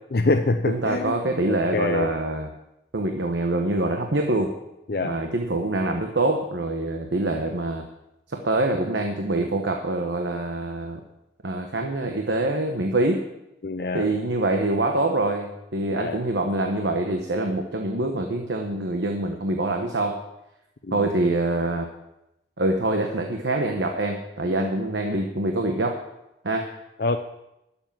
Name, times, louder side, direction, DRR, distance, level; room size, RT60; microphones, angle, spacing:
voice 1, 0.1-1.2 1.7-2.1 4.9-5.2 13.6-14.0 15.9-16.2 20.8-21.0 24.4-24.5 27.0-27.2, left 3 dB, 55° left, 6 dB, 0.6 m, -25 dB
voice 2, 0.7-2.5 2.9-4.5 5.0-7.9 8.3-11.0 11.4-13.3 13.9-20.2 20.9-21.9 22.6-26.0 26.4-26.7, right 2 dB, 80° right, 3 dB, 1.1 m, -25 dB
12.5 x 7.1 x 7.4 m, 0.89 s
head